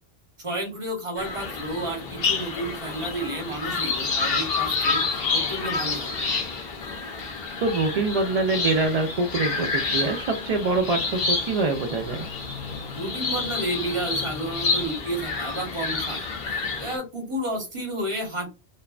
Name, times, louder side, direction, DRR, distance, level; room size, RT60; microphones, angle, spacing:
voice 1, 0.4-5.0 5.3-6.4 12.9-16.3 16.8-18.5, right 1 dB, 30° right, 2 dB, 1.0 m, -31 dB
sound 1, 1.2-17.0, left 4 dB, 65° left, 0.9 m, -29 dB
voice 2, 7.6-12.3, right 3 dB, 55° right, 2 dB, 0.4 m, -25 dB
2.6 x 2.1 x 2.3 m, 0.26 s
omnidirectional pair, 1.1 m